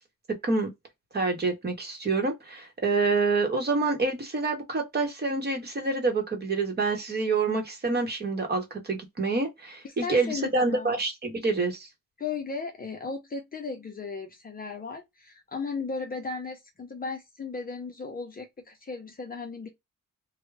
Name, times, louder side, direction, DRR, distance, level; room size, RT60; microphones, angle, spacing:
voice 1, 1.1-11.9, right 3 dB, 30° right, 1.0 m, -27 dB
voice 2, 9.8-10.9 12.2-19.7, left 4 dB, 30° left, 0.6 m, -36 dB
3.4 x 2.1 x 3.2 m
wide cardioid pair, 165°, 31 cm